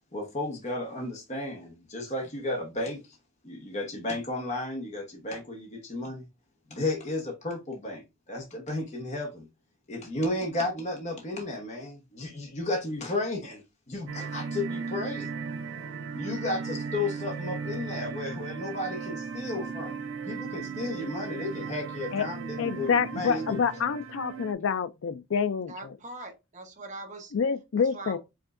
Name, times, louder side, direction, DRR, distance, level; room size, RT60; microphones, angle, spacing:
voice 1, 0.1-3.0 3.4-6.2 6.7-9.5 9.9-15.3 16.1-23.6, left 2 dB, 35° left, 1.0 m, -33 dB
sound 1, 14.1-24.5, right 5 dB, 65° right, 0.4 m, -36 dB
voice 2, 22.6-25.9 27.3-28.2, left 6 dB, 60° left, 0.4 m, -27 dB
voice 3, 25.7-27.3 27.9-28.2, right 2 dB, 35° right, 0.9 m, -41 dB
4.9 x 3.6 x 2.5 m
head